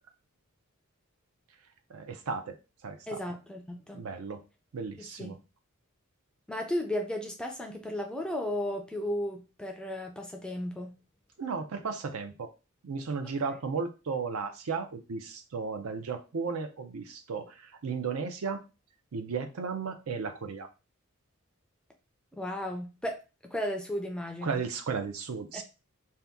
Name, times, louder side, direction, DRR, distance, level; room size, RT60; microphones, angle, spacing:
voice 1, 1.9-2.6 2.8-3.2 3.9-4.4 4.7-5.4 11.4-12.5 12.8-18.6 19.1-20.7 24.4-25.6, right 5 dB, 70° right, 7 dB, 0.5 m, -35 dB
voice 2, 3.1-4.0 5.0-5.4 6.5-10.9 13.5-13.6 22.3-24.6 25.5-25.6, left 1 dB, 5° left, 2 dB, 0.4 m, -35 dB
2.8 x 2.2 x 3.5 m, 0.30 s
head